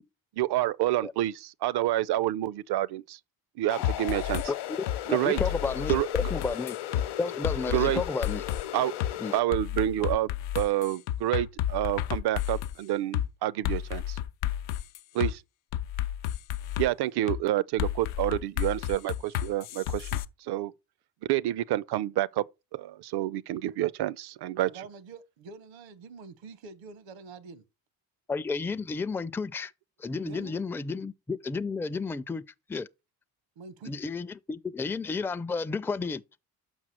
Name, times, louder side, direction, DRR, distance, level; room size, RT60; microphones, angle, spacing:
voice 1, 0.4-3.2 3.6-4.4 5.1-5.4 5.9-6.3 7.7-8.0 8.7-8.9 9.3-10.3 10.5-14.2 15.1-15.4 16.8-20.7 21.2-22.4 22.7-24.7, right 14 dB, 60° right, 0.6 m, -28 dB
sound 1, 3.7-9.4, left 13 dB, 60° left, 0.9 m, -37 dB
sound 2, 3.8-4.5 4.9-5.0 5.4-7.1 7.4-8.6 9.0-9.1 9.5-12.7 13.1-13.3 13.6-15.3 15.7-16.9 17.3-17.4 17.8-20.2, left 12 dB, 80° left, 0.6 m, -31 dB
voice 2, 5.1-6.8 7.2-8.4 9.2-9.3 28.3-29.7 30.0-32.4 32.7-32.9 33.9-36.2, left 4 dB, 5° left, 0.4 m, -32 dB
voice 3, 24.7-27.6 30.2-30.6 33.6-33.9, right 4 dB, 75° right, 1.1 m, -46 dB
6.4 x 5.9 x 4.3 m
hypercardioid pair, 55°, 46 cm